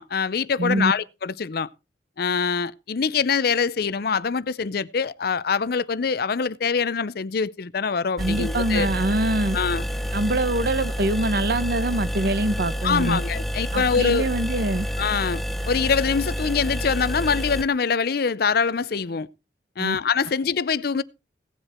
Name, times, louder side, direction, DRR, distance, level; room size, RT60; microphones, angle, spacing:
voice 1, 0.0-1.7 2.2-8.9 9.5-9.9 12.8-14.3 15.0-19.3 19.8-21.0, left 5 dB, 55° left, 0.5 m, -24 dB
voice 2, 0.6-0.9 8.2-9.6 10.1-13.2 13.7-14.9 19.8-20.0, right 1 dB, 60° right, 0.9 m, -24 dB
sound 1, 8.2-17.6, equal, ahead, 0.7 m, -28 dB
17.0 x 8.0 x 4.3 m
head